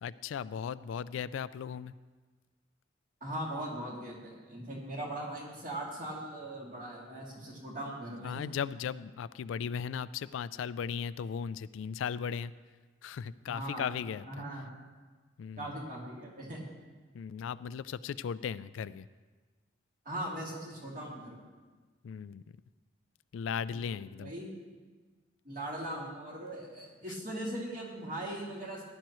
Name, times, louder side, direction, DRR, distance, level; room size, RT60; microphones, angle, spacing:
voice 1, 0.0-1.9 8.2-12.5 13.0-14.4 15.4-15.7 17.1-19.1 22.0-22.4 23.3-24.3, left 7 dB, 75° left, 16 dB, 0.3 m, -37 dB
voice 2, 3.2-8.5 13.4-13.9 14.3-14.7 15.6-16.6 20.0-21.4 23.7-24.5 25.4-28.8, right 1 dB, 40° right, -3 dB, 2.4 m, -40 dB
16.0 x 10.5 x 3.1 m, 1.4 s
head